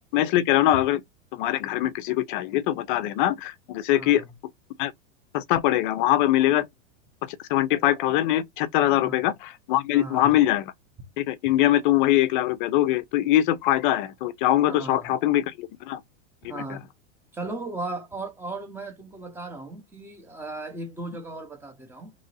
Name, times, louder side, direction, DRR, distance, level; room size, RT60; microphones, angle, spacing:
voice 1, 0.1-1.0 1.3-4.2 4.8-4.9 5.3-6.7 7.5-10.7 11.2-16.0 16.5-16.8, left 13 dB, 40° left, 0.5 m, -22 dB
voice 2, 3.9-4.3 8.9-9.3 9.9-10.4 14.7-15.1 16.5-16.9 17.3-22.1, right 2 dB, 5° right, 0.6 m, -36 dB
3.0 x 2.6 x 3.9 m
supercardioid pair, 155°, 38 cm